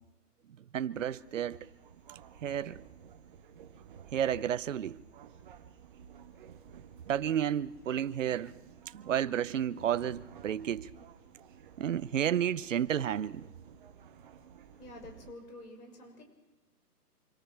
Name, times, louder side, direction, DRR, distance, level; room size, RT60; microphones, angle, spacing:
voice 1, 0.7-1.7 2.4-2.8 4.1-5.0 7.1-8.5 8.9-10.9 11.8-13.5, right 9 dB, 50° right, 0.7 m, -31 dB
sound 1, 0.9-15.3, right 7 dB, 30° right, 1.3 m, -54 dB
voice 2, 14.7-16.2, left 2 dB, 70° left, 6.7 m, -49 dB
26.0 x 24.0 x 4.6 m
hypercardioid pair, 155°, 48 cm